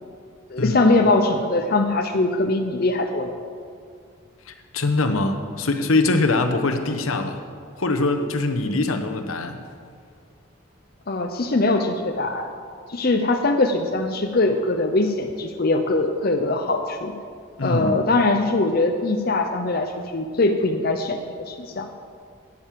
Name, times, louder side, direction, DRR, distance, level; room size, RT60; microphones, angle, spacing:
voice 1, 0.5-3.3 11.1-12.5 12.9-17.1 17.6-21.9, left 2 dB, 45° left, 4 dB, 0.6 m, -22 dB
voice 2, 4.5-7.4 7.8-9.6 17.6-18.0, left 2 dB, 80° left, 6 dB, 1.0 m, -23 dB
9.3 x 8.7 x 7.5 m, 2.2 s
head